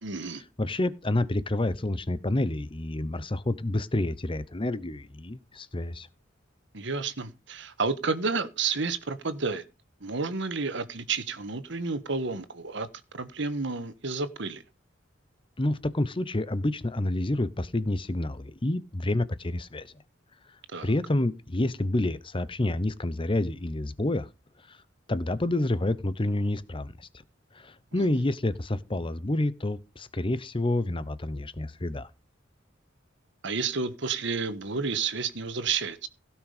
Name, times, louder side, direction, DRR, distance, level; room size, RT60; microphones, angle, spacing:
voice 1, 0.0-0.4 6.7-9.6 10.0-12.9 13.1-14.6 20.7-20.9 27.9-28.1 33.4-36.1, right 4 dB, 65° right, 1.4 m, -31 dB
voice 2, 0.6-6.1 15.6-19.9 20.8-24.3 24.7-24.8 25.1-27.1 27.5-32.1, left 1 dB, 25° left, 0.9 m, -28 dB
16.5 x 6.2 x 5.0 m
head